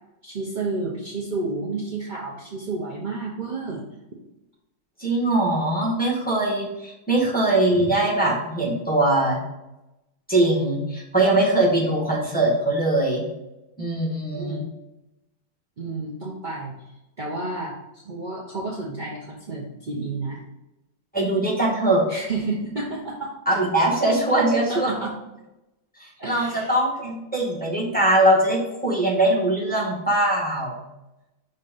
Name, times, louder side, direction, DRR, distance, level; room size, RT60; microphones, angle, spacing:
voice 1, 0.2-3.8 11.6-11.7 14.2-14.6 15.8-16.7 17.2-20.4 22.1-23.3 24.3-24.4 24.7-25.1 26.2-26.7 27.0-27.1, right 3 dB, 65° right, -4 dB, 0.4 m, -31 dB
voice 2, 5.0-9.4 10.3-13.2 13.8-14.6 21.1-22.1 23.5-24.9 26.0-30.8, right 1 dB, 5° left, -5 dB, 1.2 m, -21 dB
5.5 x 3.9 x 5.2 m, 0.97 s
omnidirectional pair, 2.2 m